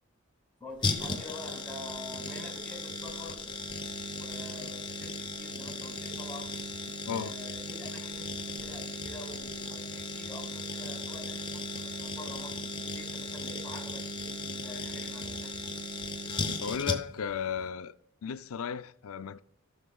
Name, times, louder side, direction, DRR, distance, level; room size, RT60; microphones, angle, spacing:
voice 1, 0.6-3.5 4.0-6.6 7.1-15.7, left 2 dB, 5° left, 2.0 m, -46 dB
sound 1, 0.8-17.3 17.6-17.7, left 2 dB, 20° left, 0.7 m, -36 dB
voice 2, 16.6-17.9 18.2-19.4, left 7 dB, 75° left, 0.4 m, -34 dB
17.0 x 5.9 x 2.3 m
head